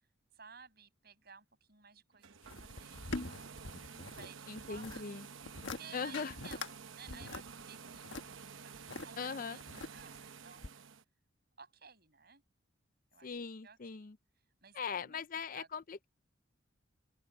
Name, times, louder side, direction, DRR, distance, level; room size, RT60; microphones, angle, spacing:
voice 1, 0.3-3.6 4.2-5.0 5.7-8.4 8.6-8.7 9.0-10.6 11.6-12.4 13.1-13.4 13.6-14.1 14.6-15.2 15.5-15.7, right 6 dB, 50° right, 6.6 m, -56 dB
sound 1, 2.1-11.0, right 6 dB, 75° right, 1.0 m, -51 dB
sound 2, 2.4-4.3 4.6-5.0 5.4-5.8 6.1-6.7 7.1-9.1 9.6-10.2 10.6-10.7, left 3 dB, 65° left, 1.4 m, -43 dB
voice 2, 4.5-5.3 5.9-6.4 9.2-9.6 13.2-14.2 14.7-16.1, left 5 dB, 40° left, 0.5 m, -40 dB
open air
head